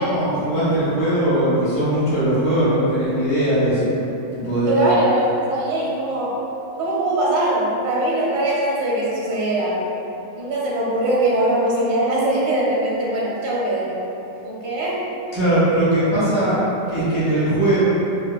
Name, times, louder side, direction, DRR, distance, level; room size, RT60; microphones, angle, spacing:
voice 1, 0.0-3.9 4.3-5.0 15.3-16.6 16.9-17.8, right 1 dB, 65° left, -11 dB, 1.8 m, -19 dB
voice 2, 4.7-6.4 6.8-9.8 10.4-14.0 14.4-15.0, right 1 dB, 80° right, -5 dB, 1.4 m, -21 dB
4.5 x 2.1 x 2.3 m, 2.9 s
omnidirectional pair, 2.0 m